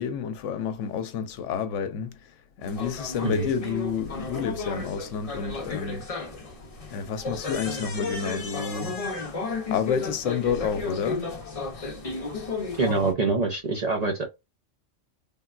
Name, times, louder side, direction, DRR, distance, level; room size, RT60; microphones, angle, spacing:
voice 1, 0.0-2.3 2.6-6.1 6.9-9.0 9.7-11.4, left 7 dB, 80° left, 0.9 m, -30 dB
sound 1, 2.6-13.1, left 3 dB, 35° left, 0.7 m, -33 dB
voice 2, 12.8-14.3, right 3 dB, 45° right, 0.6 m, -25 dB
3.5 x 2.2 x 2.4 m
omnidirectional pair, 1.3 m